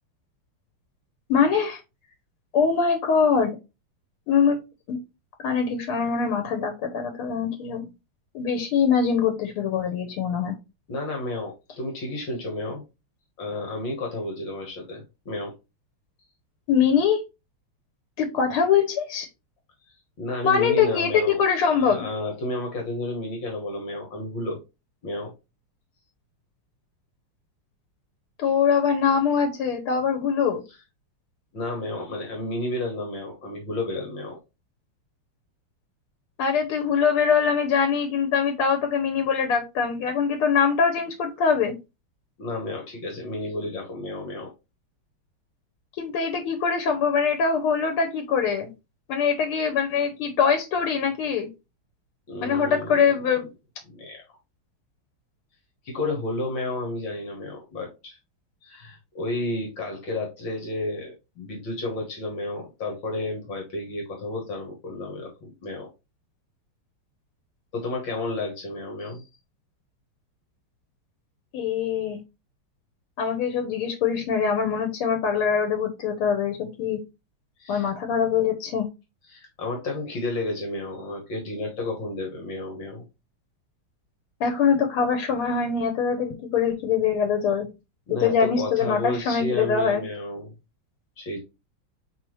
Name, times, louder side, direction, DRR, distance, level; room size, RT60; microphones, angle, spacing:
voice 1, 1.3-1.8 2.5-3.6 4.3-4.6 4.9-5.0 5.4-7.9 8.3-10.5 16.7-17.2 18.2-19.3 20.4-22.0 28.4-30.6 36.4-41.7 46.0-48.7 49.1-51.5 52.4-53.5 71.5-72.2 73.2-77.0 77.7-78.9 84.4-87.7 88.1-90.0, left 6 dB, 90° left, 1.7 m, -23 dB
voice 2, 10.9-12.8 13.4-15.5 20.2-21.4 21.7-24.6 25.0-25.3 31.5-34.4 42.4-44.5 52.3-53.0 53.9-54.2 55.8-58.2 58.6-65.9 67.7-69.3 77.6-77.9 79.3-83.0 88.1-90.5 91.2-91.4, left 2 dB, 65° left, 1.9 m, -31 dB
4.7 x 3.6 x 3.1 m
omnidirectional pair, 2.3 m